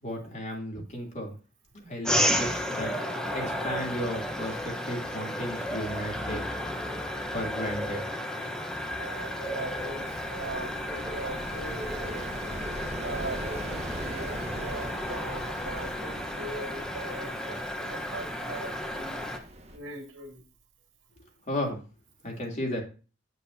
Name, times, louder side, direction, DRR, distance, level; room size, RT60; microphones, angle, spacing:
voice 1, 0.0-1.3 1.7-2.9 3.3-6.4 7.3-8.0 21.5-21.8 22.2-22.8, equal, 40° left, -1 dB, 3.2 m, -34 dB
sound 1, 2.0-19.4, equal, 5° left, 1.1 m, -33 dB
voice 2, 9.0-10.7 11.1-12.3 13.0-19.2 19.7-20.4, right 2 dB, 85° right, 3 dB, 2.4 m, -40 dB
sound 2, 9.5-19.8, right 1 dB, 35° right, 1.3 m, -41 dB
9.3 x 8.1 x 2.8 m, 0.34 s
head